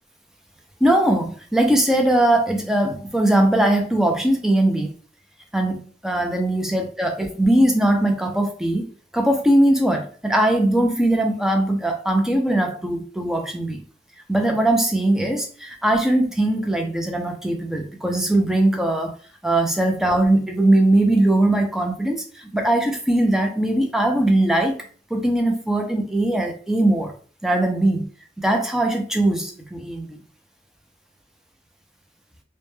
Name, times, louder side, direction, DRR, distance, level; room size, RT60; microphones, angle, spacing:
voice 1, 0.8-4.9 5.5-8.9 9.1-13.8 14.3-19.1 19.4-24.8 25.1-27.1 27.4-28.1 28.4-30.2, right 1 dB, 5° right, 0.4 m, -20 dB
2.1 x 2.1 x 3.0 m
head